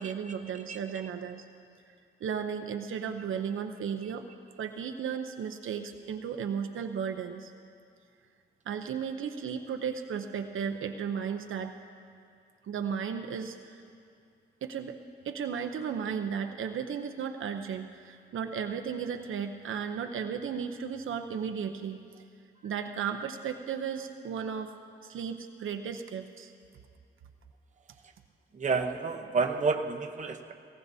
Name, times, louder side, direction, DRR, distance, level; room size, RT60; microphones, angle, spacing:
voice 1, 0.0-1.5 2.2-4.3 4.6-7.5 8.7-11.7 12.6-13.8 14.6-15.0 15.2-22.0 22.6-24.8 25.0-26.5, right 7 dB, 75° right, 5 dB, 0.7 m, -35 dB
voice 2, 0.7-1.1 28.5-30.5, right 4 dB, 35° right, 3 dB, 0.8 m, -30 dB
18.5 x 17.0 x 2.7 m, 2.3 s
wide cardioid pair, 115°, 21 cm